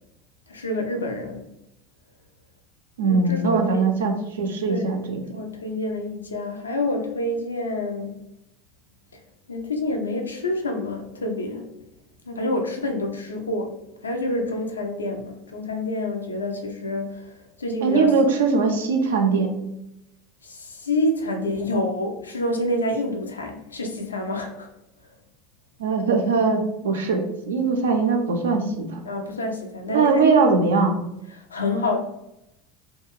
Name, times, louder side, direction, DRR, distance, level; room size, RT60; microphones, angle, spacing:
voice 1, 0.5-1.4 3.0-3.9 4.7-5.0 5.3-8.2 9.5-11.7 12.3-13.8 14.0-18.1 20.4-24.7 29.1-30.2 31.3-32.0, left 1 dB, 80° left, 4 dB, 0.4 m, -27 dB
voice 2, 3.0-5.2 17.8-19.6 25.8-29.0 29.9-31.0, right 4 dB, 70° right, 4 dB, 0.4 m, -21 dB
2.4 x 2.2 x 2.9 m, 0.85 s
figure-of-eight pair, 75°, 0 cm